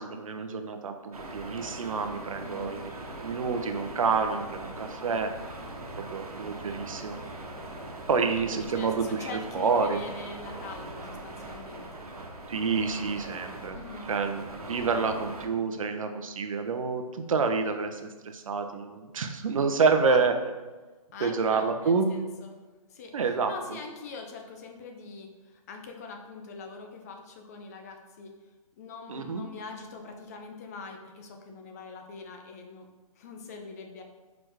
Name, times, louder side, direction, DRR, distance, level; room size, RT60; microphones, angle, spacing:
voice 1, 0.0-2.9 3.2-5.3 6.0-7.2 8.1-9.3 9.5-10.0 12.5-13.8 14.1-20.3 21.2-22.1 23.1-23.5 29.1-29.4, right 5 dB, 65° right, 6 dB, 0.8 m, -28 dB
sound 1, 1.1-15.5, right 2 dB, 90° right, 1.2 m, -41 dB
voice 2, 2.4-2.8 8.3-12.1 13.7-14.1 20.0-20.2 21.1-22.6 22.9-28.3 28.8-32.9 33.2-34.0, left 4 dB, 25° left, 3 dB, 0.6 m, -43 dB
4.7 x 4.3 x 4.8 m, 1.3 s
hypercardioid pair, 160°, 19 cm